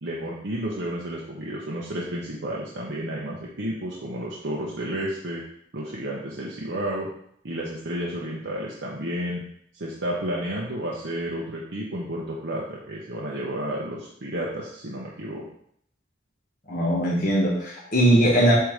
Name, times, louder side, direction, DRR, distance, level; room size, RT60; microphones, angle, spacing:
voice 1, 0.0-5.4 5.7-7.1 7.4-9.4 9.7-15.4, right 1 dB, 70° right, -4 dB, 0.9 m, -31 dB
voice 2, 16.7-18.5, right 1 dB, 45° left, -5 dB, 1.3 m, -20 dB
8.0 x 3.0 x 5.1 m, 0.69 s
head